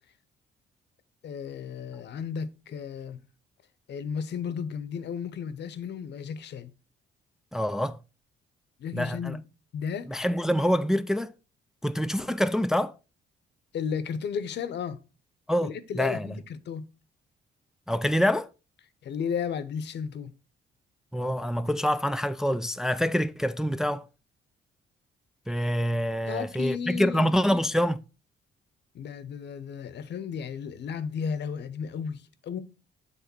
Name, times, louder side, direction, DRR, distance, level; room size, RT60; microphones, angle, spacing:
voice 1, 1.2-3.2 3.9-6.7 8.8-9.4 9.7-10.3 13.7-15.0 15.6-16.9 19.0-20.4 26.3-27.3 28.9-32.6, left 7 dB, 60° left, 0.7 m, -34 dB
voice 2, 7.5-8.0 8.9-9.4 10.1-11.3 11.8-13.0 15.5-16.3 17.9-18.5 21.1-24.1 25.5-28.0, equal, ahead, 0.3 m, -26 dB
7.3 x 3.6 x 4.4 m
cardioid pair, 90°, 20 cm